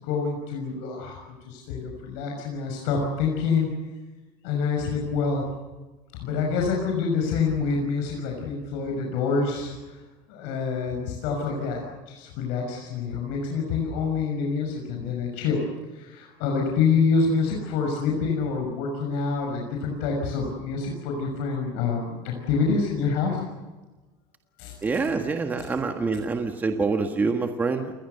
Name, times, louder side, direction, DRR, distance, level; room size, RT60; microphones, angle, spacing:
voice 1, 0.0-1.2 1.5-3.7 4.4-5.4 6.2-9.7 10.3-15.6 15.9-23.5 24.6-24.7, left 5 dB, 70° left, 1 dB, 6.1 m, -26 dB
voice 2, 24.8-27.9, right 4 dB, 15° right, 5 dB, 1.5 m, -26 dB
29.5 x 21.0 x 6.8 m, 1.2 s
cardioid pair, 155°, 12 cm